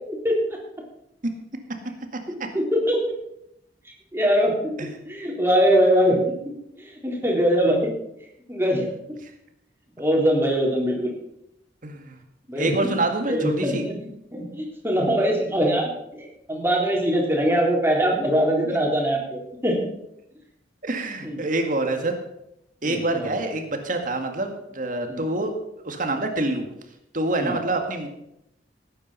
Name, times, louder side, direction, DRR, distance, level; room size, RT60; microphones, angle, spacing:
voice 1, 2.5-3.0 4.1-4.8 5.1-6.5 7.0-7.9 8.5-9.2 10.0-11.1 12.5-12.9 13.3-19.9 21.2-21.4 22.8-23.3 25.1-25.3 27.4-27.6, equal, 15° right, -1 dB, 3.7 m, -22 dB
voice 2, 11.8-12.2 12.6-13.8 18.6-18.8 20.8-22.1 22.8-25.6 25.8-26.7 27.1-28.1, right 2 dB, 50° right, 5 dB, 2.1 m, -26 dB
18.0 x 9.2 x 5.7 m, 0.80 s
head